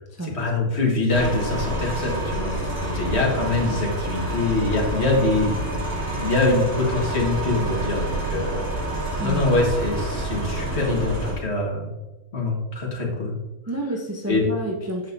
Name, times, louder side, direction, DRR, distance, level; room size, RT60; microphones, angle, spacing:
voice 1, 0.2-2.5 2.9-5.5 6.1-8.7 9.2-11.9 12.3-13.3 14.3-14.4, left 2 dB, 50° left, -2 dB, 1.9 m, -24 dB
sound 1, 1.1-11.3, right 1 dB, 45° right, 2.9 m, -28 dB
voice 2, 9.2-9.5 13.7-15.1, right 1 dB, 20° right, -1 dB, 0.5 m, -29 dB
9.0 x 6.3 x 2.7 m, 1.1 s
omnidirectional pair, 1.4 m